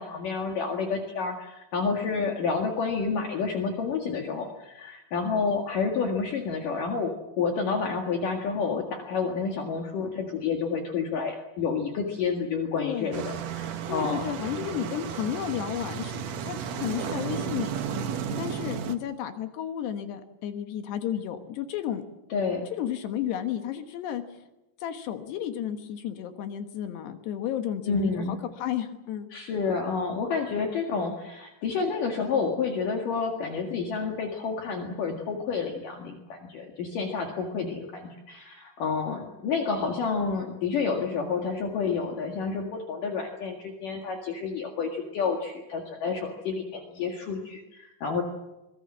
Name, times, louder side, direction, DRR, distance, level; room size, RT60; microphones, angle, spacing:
voice 1, 0.0-13.2 13.5-14.2 22.3-22.6 27.9-28.4 29.3-48.2, left 5 dB, 55° left, 2 dB, 3.2 m, -29 dB
voice 2, 12.8-13.1 13.9-17.7 18.4-22.0 22.7-24.2 24.8-29.3, left 10 dB, 75° left, 7 dB, 3.4 m, -32 dB
sound 1, 13.1-19.0, right 7 dB, 65° right, 1.7 m, -33 dB
24.0 x 21.0 x 7.5 m, 0.98 s
omnidirectional pair, 5.0 m